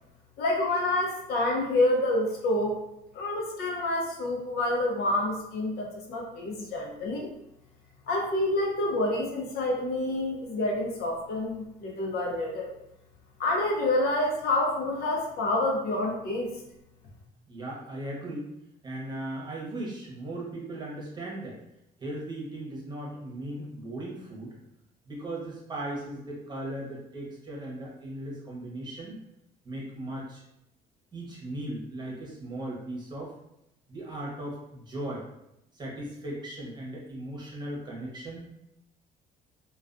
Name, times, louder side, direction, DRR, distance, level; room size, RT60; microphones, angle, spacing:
voice 1, 0.4-2.8 3.1-7.3 8.1-12.7 13.4-16.5, left 1 dB, 70° left, -1 dB, 0.7 m, -28 dB
voice 2, 17.5-18.5 18.8-21.6 22.0-24.6 25.1-29.2 29.6-30.4 31.1-33.3 33.9-35.3 35.7-38.5, right 1 dB, 25° right, -4 dB, 0.8 m, -37 dB
2.3 x 2.2 x 2.5 m, 0.82 s
cardioid pair, 110°, 17 cm